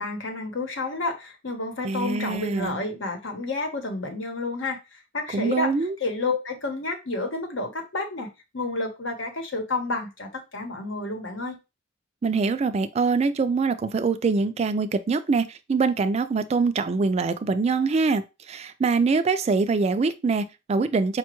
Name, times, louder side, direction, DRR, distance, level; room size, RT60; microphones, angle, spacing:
voice 1, 0.0-4.8 5.1-5.7 6.0-8.3 8.5-11.6, left 2 dB, 70° left, 0.9 m, -30 dB
voice 2, 1.8-2.8 5.3-5.9 12.2-18.2 18.5-21.2, right 4 dB, 35° right, 0.3 m, -24 dB
5.0 x 2.2 x 3.0 m
head